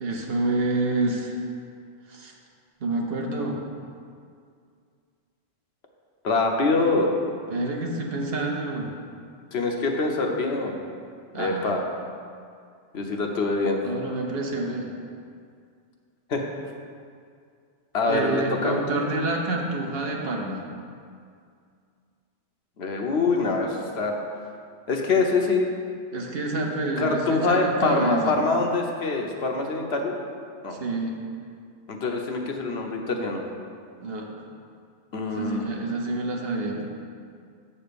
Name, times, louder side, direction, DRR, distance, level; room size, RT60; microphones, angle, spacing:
voice 1, 0.0-1.4 2.1-2.3 2.8-3.6 7.5-8.9 11.3-11.7 13.8-14.9 18.1-20.6 26.1-28.3 30.8-31.2 34.0-34.3 35.4-36.9, right 2 dB, 60° right, 0 dB, 1.1 m, -28 dB
voice 2, 6.2-7.1 9.5-10.8 11.3-11.8 12.9-13.8 16.3-16.5 17.9-18.8 22.8-24.1 24.9-25.7 27.0-30.1 30.6-30.8 31.9-33.5 35.1-35.8, left 3 dB, 65° left, 2 dB, 1.1 m, -24 dB
7.4 x 4.3 x 6.8 m, 2.3 s
omnidirectional pair, 1.2 m